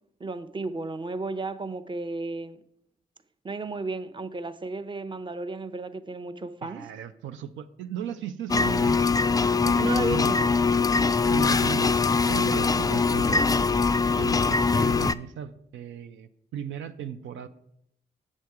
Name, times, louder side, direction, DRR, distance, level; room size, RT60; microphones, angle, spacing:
voice 1, 0.2-2.6 3.4-6.8 9.8-10.4, right 3 dB, 25° right, 0.7 m, -33 dB
voice 2, 6.6-9.0 9.6-10.5 11.3-11.9 12.3-13.5 14.2-17.5, right 8 dB, 80° right, 0.5 m, -36 dB
sound 1, 8.5-15.1, left 4 dB, 20° left, 0.3 m, -22 dB
7.4 x 6.4 x 4.7 m
supercardioid pair, 45°, 19 cm